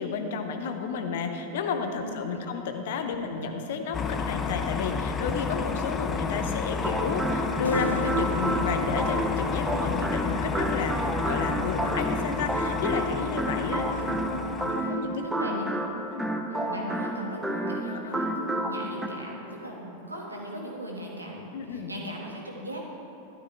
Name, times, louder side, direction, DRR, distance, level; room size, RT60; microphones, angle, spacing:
voice 1, 0.0-14.2 14.6-15.2 16.1-16.3 17.9-18.2 21.5-21.9, left 5 dB, 55° left, 6 dB, 1.0 m, -32 dB
voice 2, 2.0-2.5 3.2-3.3 13.4-15.8 16.5-22.8, equal, 80° right, -1 dB, 1.8 m, -39 dB
sound 1, 3.9-14.9, left 5 dB, 20° left, 0.6 m, -31 dB
sound 2, 6.7-19.1, right 1 dB, 10° right, 0.9 m, -30 dB
sound 3, 7.6-10.3 11.8-13.8, left 1 dB, 85° left, 0.7 m, -39 dB
12.5 x 12.0 x 3.4 m, 3.0 s
figure-of-eight pair, 90°, 0 cm